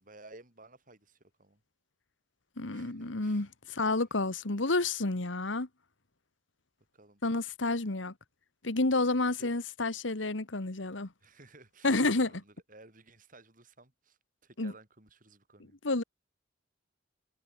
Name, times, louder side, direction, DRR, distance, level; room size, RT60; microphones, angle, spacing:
voice 1, 0.0-1.6 2.7-3.5 6.9-7.2 9.2-9.5 11.2-15.8, right 2 dB, 45° right, 6.8 m, -56 dB
voice 2, 2.6-5.7 7.2-8.1 8.6-11.1 11.8-12.3 14.6-14.7 15.8-16.0, left 2 dB, 90° left, 1.8 m, -30 dB
head